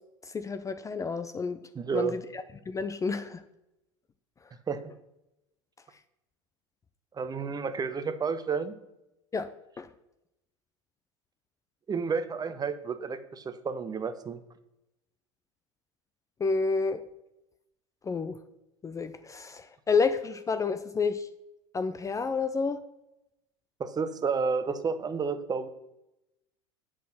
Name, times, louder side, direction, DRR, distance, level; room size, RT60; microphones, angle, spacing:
voice 1, 0.3-1.6 1.9-3.4 9.3-9.5 9.8-9.9 16.4-17.0 18.0-18.4 18.8-21.3 21.7-22.8, left 4 dB, 20° left, 11 dB, 0.5 m, -30 dB
voice 2, 1.7-2.2 4.7-4.8 7.1-8.7 11.9-14.4 23.8-25.7, right 5 dB, 25° right, 11 dB, 0.8 m, -31 dB
8.4 x 6.4 x 5.7 m, 0.90 s
hypercardioid pair, 80°, 16 cm